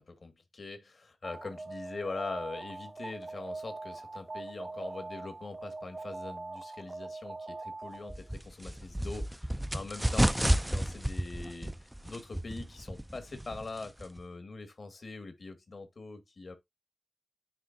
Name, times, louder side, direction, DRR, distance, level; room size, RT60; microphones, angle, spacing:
voice 1, 0.0-16.6, left 3 dB, 60° left, 2.0 m, -43 dB
Alarm, 1.2-8.3, right 3 dB, 35° right, 0.8 m, -42 dB
sound 1, 8.1-14.2, right 1 dB, 10° right, 0.5 m, -32 dB
9.9 x 3.5 x 2.7 m
cardioid pair, 45°, 0 cm